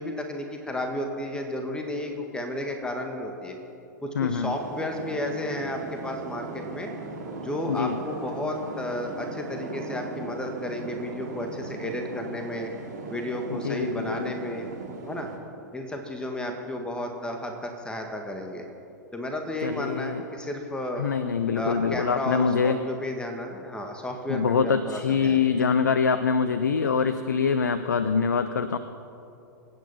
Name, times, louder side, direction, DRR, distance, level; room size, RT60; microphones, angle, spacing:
voice 1, 0.0-3.6 4.0-6.9 7.4-12.7 13.1-14.7 15.1-15.3 15.7-18.6 19.1-21.0 21.5-25.7, left 1 dB, 10° left, 3 dB, 1.6 m, -32 dB
voice 2, 4.2-4.5 7.7-8.0 13.5-14.3 19.6-20.2 21.0-22.8 24.3-28.8, left 6 dB, 75° left, 11 dB, 0.7 m, -24 dB
sound 1, 4.5-15.4, right 3 dB, 65° right, 2.7 m, -38 dB
23.5 x 9.5 x 5.7 m, 2.7 s
figure-of-eight pair, 100°, 10 cm